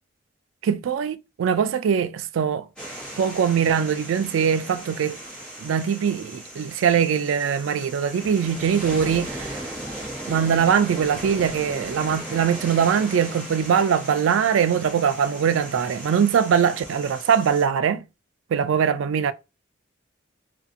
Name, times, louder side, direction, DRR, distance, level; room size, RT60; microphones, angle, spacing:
voice 1, 0.6-2.7 3.2-5.2 5.6-9.6 10.3-18.0 18.5-19.3, right 7 dB, 80° right, 0.3 m, -22 dB
sound 1, 2.8-17.7, right 1 dB, 5° left, 0.9 m, -37 dB
2.5 x 2.4 x 2.5 m
head